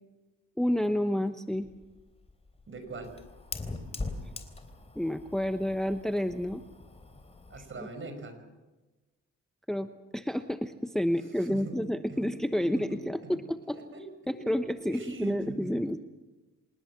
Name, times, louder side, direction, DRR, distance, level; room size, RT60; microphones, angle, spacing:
voice 1, 0.6-1.7 4.9-6.6 9.7-9.9 10.1-13.4 13.7-13.8 14.3-16.0, equal, ahead, 8 dB, 1.0 m, -29 dB
Fire, 1.5-7.8, left 3 dB, 20° left, 3.6 m, -42 dB
voice 2, 2.7-3.2 7.5-8.4 11.4-11.8 12.1-12.3 12.6-13.4 13.7-14.6 14.9-15.7, right 2 dB, 40° right, 8 dB, 5.4 m, -42 dB
26.5 x 19.5 x 7.4 m, 1.2 s
cardioid pair, 90°, 30 cm